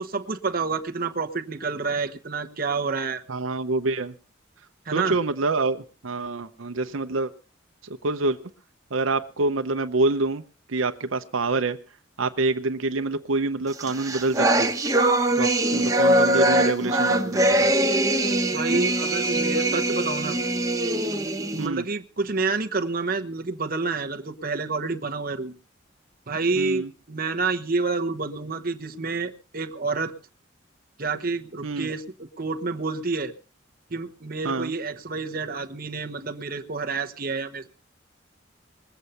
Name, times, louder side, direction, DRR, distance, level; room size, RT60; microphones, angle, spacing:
voice 1, 0.0-3.2 4.9-5.2 18.5-20.4 21.5-25.6 26.3-30.1 31.0-33.3 33.9-37.7, right 4 dB, 45° right, 6 dB, 1.0 m, -28 dB
voice 2, 3.3-4.1 4.9-7.3 7.8-8.4 8.9-11.8 12.2-14.7 15.4-17.7 21.6-21.8 26.6-26.9 31.6-31.9 34.4-34.7, right 3 dB, 85° right, 7 dB, 0.8 m, -26 dB
sound 1, 13.8-21.7, right 1 dB, 15° right, 1.2 m, -22 dB
20.5 x 8.2 x 5.6 m, 0.37 s
head